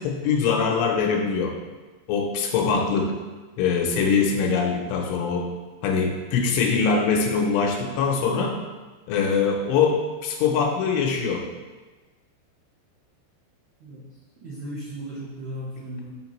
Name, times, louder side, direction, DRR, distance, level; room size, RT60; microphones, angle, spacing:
voice 1, 0.0-1.5 2.1-3.2 3.6-5.5 5.8-8.6 9.1-11.5, left 5 dB, 80° left, 2 dB, 2.9 m, -23 dB
voice 2, 14.4-16.1, right 1 dB, 85° right, -6 dB, 1.7 m, -36 dB
6.8 x 5.7 x 3.1 m, 1.2 s
omnidirectional pair, 5.1 m